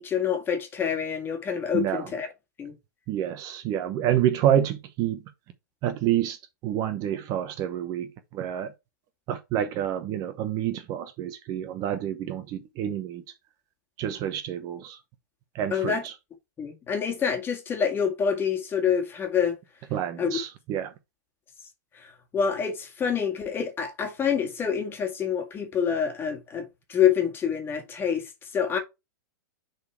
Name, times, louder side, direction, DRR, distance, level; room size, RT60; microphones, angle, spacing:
voice 1, 0.0-2.3 2.6-2.7 15.7-16.0 16.6-19.6 20.2-20.3 21.9-28.8, left 7 dB, 20° left, 1.9 m, -27 dB
voice 2, 1.7-2.1 3.1-5.2 5.8-6.4 6.6-8.7 9.3-13.2 14.0-15.0 15.5-16.1 19.9-20.9, right 11 dB, 35° right, 1.0 m, -28 dB
6.8 x 4.2 x 4.4 m
hypercardioid pair, 125°, 10 cm